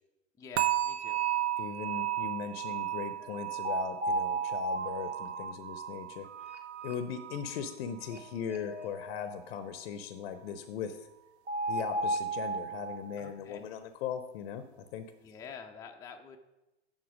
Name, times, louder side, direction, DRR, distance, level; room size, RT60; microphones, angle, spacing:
voice 1, 0.4-1.2 13.2-13.6 15.2-16.4, left 6 dB, 10° left, 3 dB, 0.4 m, -47 dB
Tibetan Singing Bowl (Struck), 0.6-7.6 7.9-8.3 8.8-8.9, right 13 dB, 65° right, 0.5 m, -35 dB
voice 2, 1.6-6.3 6.8-11.0 11.7-15.1, left 8 dB, 60° left, 10 dB, 0.7 m, -39 dB
sound 1, 3.2-3.3 3.6-7.4 7.7-7.8 8.1-8.2 8.5-9.2 11.5-13.3, right 2 dB, 90° right, 1.0 m, -35 dB
7.4 x 5.6 x 4.8 m, 0.98 s
hypercardioid pair, 95°, 35 cm